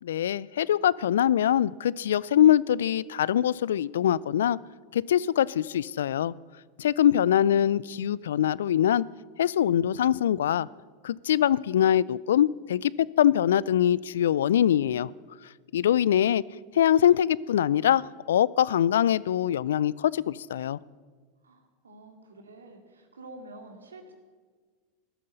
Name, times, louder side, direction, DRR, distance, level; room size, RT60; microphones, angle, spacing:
voice 1, 0.0-4.6 4.9-6.3 6.8-9.0 9.4-10.7 11.0-12.9 13.2-15.1 15.7-16.4 16.7-20.8, left 10 dB, 75° left, 23 dB, 0.3 m, -23 dB
voice 2, 7.1-7.7 21.4-24.1, right 2 dB, 85° right, 4 dB, 2.3 m, -48 dB
15.0 x 12.0 x 6.6 m, 1.5 s
hypercardioid pair, 90°, 0 cm